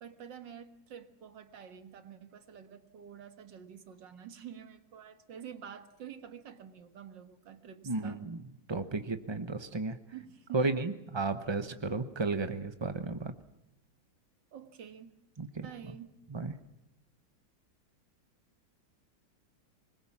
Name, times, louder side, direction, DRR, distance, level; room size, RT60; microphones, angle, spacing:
voice 1, 0.0-8.2 10.1-10.9 14.5-15.1 15.6-16.2, right 9 dB, 70° right, 9 dB, 2.1 m, -48 dB
voice 2, 7.9-8.4 8.7-10.0 10.5-13.3 15.4-15.7 16.3-16.5, right 3 dB, 45° right, 9 dB, 0.3 m, -33 dB
25.0 x 21.5 x 7.2 m, 0.87 s
omnidirectional pair, 2.1 m